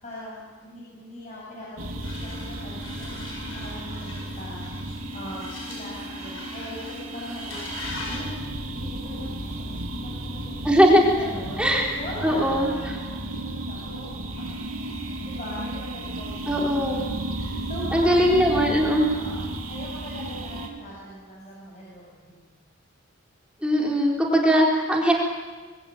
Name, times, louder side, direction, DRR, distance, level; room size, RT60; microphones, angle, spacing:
voice 1, 0.0-11.7 12.0-14.6 15.2-17.0 17.3-22.4, left 1 dB, 35° left, -6 dB, 7.9 m, -40 dB
sound 1, 1.8-20.7, right 1 dB, 85° right, 3.5 m, -34 dB
sound 2, 2.0-8.3, left 2 dB, 70° left, 7.9 m, -40 dB
voice 2, 10.6-11.0 11.6-11.8 12.2-12.7 16.5-17.0 17.9-19.1 23.6-25.1, equal, 5° right, -2 dB, 4.0 m, -20 dB
25.0 x 22.5 x 9.2 m, 1.4 s
head